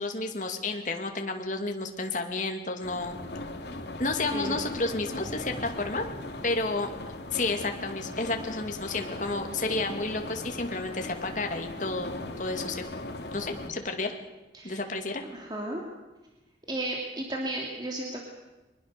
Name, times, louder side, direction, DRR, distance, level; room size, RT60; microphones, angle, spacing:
voice 1, 0.0-3.2 4.0-6.1 6.4-6.9 7.3-12.8 13.3-14.2 14.6-15.2, left 3 dB, 45° left, 4 dB, 2.4 m, -31 dB
sound 1, 2.8-13.7, left 2 dB, 70° left, 2.6 m, -39 dB
voice 2, 15.3-15.8 16.7-18.2, right 1 dB, 25° right, 0 dB, 2.6 m, -34 dB
24.0 x 20.5 x 6.8 m, 1.1 s
head